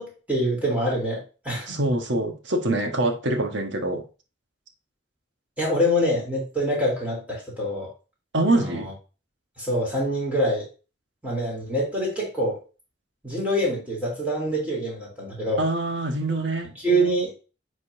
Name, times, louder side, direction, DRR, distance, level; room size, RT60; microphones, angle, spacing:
voice 1, 0.0-1.8 5.6-7.9 8.5-8.8 9.6-10.7 11.2-12.6 13.2-15.6 16.8-17.3, equal, 10° right, -4 dB, 3.3 m, -25 dB
voice 2, 1.7-4.0 8.3-8.9 15.6-16.7, right 2 dB, 85° right, 4 dB, 1.4 m, -24 dB
9.8 x 4.1 x 2.7 m, 0.32 s
head